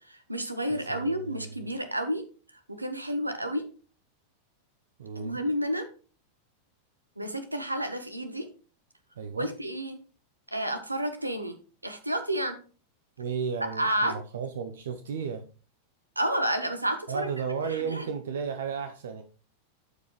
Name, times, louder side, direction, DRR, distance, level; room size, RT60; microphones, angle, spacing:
voice 1, 0.1-2.2 2.7-3.7 5.2-5.9 7.2-8.5 9.4-10.0 10.5-11.5 11.8-12.6 13.6-14.2 16.2-17.3 17.7-18.1, equal, 85° right, 9 dB, 1.0 m, -30 dB
voice 2, 0.7-1.7 5.0-5.4 9.2-9.5 13.2-15.4 17.1-19.2, right 6 dB, 60° right, 8 dB, 0.7 m, -34 dB
13.0 x 4.7 x 3.1 m, 0.37 s
figure-of-eight pair, 90°, 0 cm